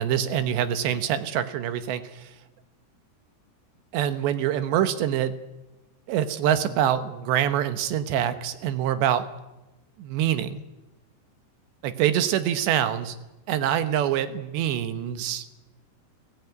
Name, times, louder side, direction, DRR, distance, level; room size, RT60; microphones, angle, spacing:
voice 1, 0.0-2.3 3.9-5.3 6.1-9.3 10.0-10.6 11.8-13.2 13.5-15.4, right 10 dB, 90° right, 11 dB, 3.6 m, -25 dB
30.0 x 17.0 x 9.4 m, 1.1 s
omnidirectional pair, 4.9 m